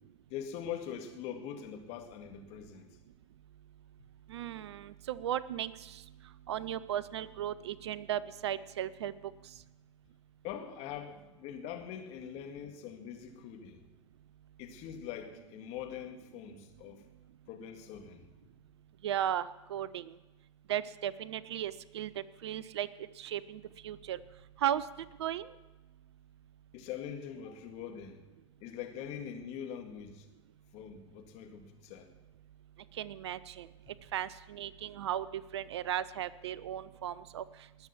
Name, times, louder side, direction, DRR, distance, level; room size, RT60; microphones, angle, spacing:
voice 1, 0.3-2.9 10.4-13.8 14.6-17.0 17.5-18.3 26.7-28.2 28.6-30.3 30.7-32.1, left 9 dB, 45° left, 4 dB, 2.1 m, -43 dB
voice 2, 4.3-6.0 6.5-9.1 19.0-20.2 20.7-22.1 22.4-22.9 23.2-24.2 24.6-24.8 25.2-25.5 33.0-33.7 34.1-37.4, right 11 dB, 65° right, 18 dB, 0.6 m, -36 dB
19.5 x 7.1 x 7.1 m, 1.1 s
figure-of-eight pair, 90°, 15 cm